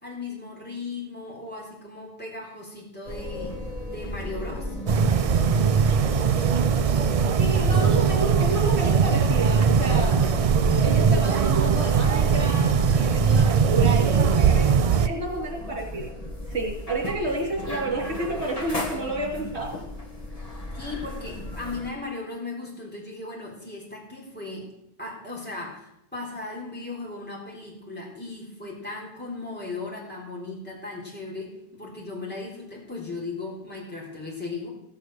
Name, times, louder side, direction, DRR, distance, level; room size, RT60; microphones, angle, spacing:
voice 1, 0.0-3.7 3.9-4.8 20.7-24.7 25.0-34.7, left 3 dB, 10° left, -4 dB, 3.7 m, -37 dB
sound 1, 3.1-21.9, left 1 dB, 35° left, 1.8 m, -36 dB
sound 2, 4.9-15.1, right 6 dB, 50° right, 0.4 m, -20 dB
voice 2, 7.4-10.2 10.8-16.1 16.5-19.8, right 2 dB, 80° right, -1 dB, 3.4 m, -30 dB
15.5 x 7.2 x 6.4 m, 0.81 s
omnidirectional pair, 1.1 m